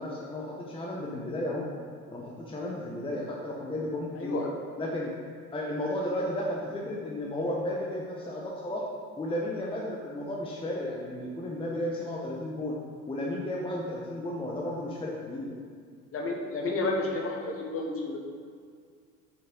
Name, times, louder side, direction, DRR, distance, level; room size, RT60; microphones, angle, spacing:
voice 1, 0.0-1.7 2.1-4.4 4.8-5.1 5.5-8.8 9.2-12.8 13.1-15.5, left 1 dB, 10° left, -3 dB, 1.0 m, -33 dB
voice 2, 16.1-18.2, left 2 dB, 30° left, 0 dB, 1.4 m, -31 dB
6.2 x 5.6 x 5.3 m, 2.1 s
figure-of-eight pair, 65°, 43 cm